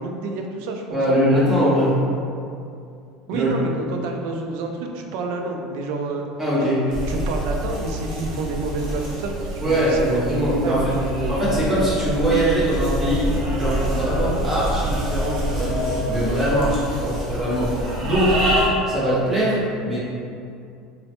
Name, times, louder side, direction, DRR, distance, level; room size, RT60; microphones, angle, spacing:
voice 1, 0.0-1.2 3.3-6.2 6.6-11.4, right 3 dB, 65° right, 2 dB, 0.3 m, -29 dB
voice 2, 0.9-2.0 3.3-3.5 6.4-6.8 9.6-10.9 11.3-18.4 18.9-20.0, right 1 dB, 10° right, -10 dB, 0.8 m, -22 dB
sound 1, 6.9-18.7, equal, 40° right, 0.7 m, -26 dB
3.0 x 2.1 x 2.8 m, 2.4 s
cardioid pair, 165°, 0 cm